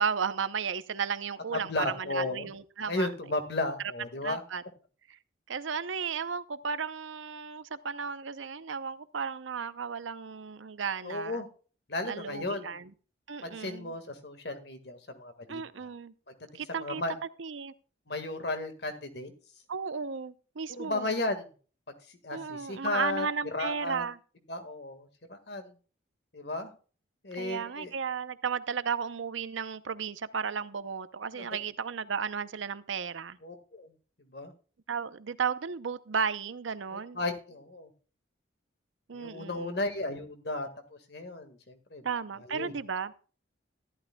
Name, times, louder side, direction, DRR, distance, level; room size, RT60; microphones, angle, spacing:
voice 1, 0.0-3.1 4.2-4.6 5.1-5.2 5.5-11.4 12.1-12.9 13.3-13.9 15.5-16.1 16.5-17.0 17.4-17.7 19.7-21.1 22.3-24.2 27.4-33.4 34.9-37.2 39.1-39.8 42.0-43.1, right 6 dB, 80° right, 0.7 m, -34 dB
voice 2, 1.5-2.5 2.9-4.4 11.0-11.5 11.9-12.7 13.4-15.9 16.3-17.1 18.1-19.3 20.8-21.5 22.2-24.0 24.5-25.7 26.3-26.7 27.2-27.9 31.3-31.5 33.4-33.9 34.3-34.5 36.9-37.9 39.1-42.0 42.5-42.7, left 2 dB, 55° left, 1.7 m, -34 dB
14.5 x 11.0 x 2.2 m
head